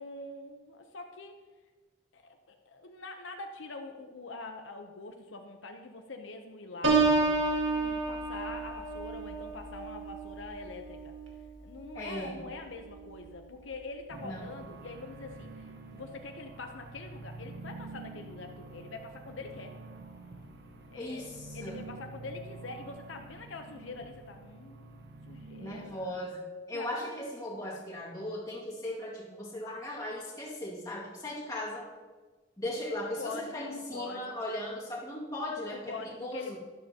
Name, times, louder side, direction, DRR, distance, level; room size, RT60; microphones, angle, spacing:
voice 1, 0.0-1.3 2.1-2.2 2.5-7.0 7.5-11.1 11.6-19.7 20.9-21.3 21.5-26.1 26.7-27.1 33.2-34.3 35.7-36.6, left 3 dB, 80° left, 5 dB, 0.7 m, -44 dB
Piano, 6.8-12.5 12.9-13.3, right 3 dB, 85° right, 1.6 m, -31 dB
voice 2, 11.9-12.4 14.2-14.6 20.9-21.8 25.6-31.9 32.6-36.6, left 1 dB, 20° left, -5 dB, 2.1 m, -38 dB
sound 1, 14.1-26.1, right 3 dB, 55° right, 1.1 m, -47 dB
12.0 x 12.0 x 2.9 m, 1.4 s
head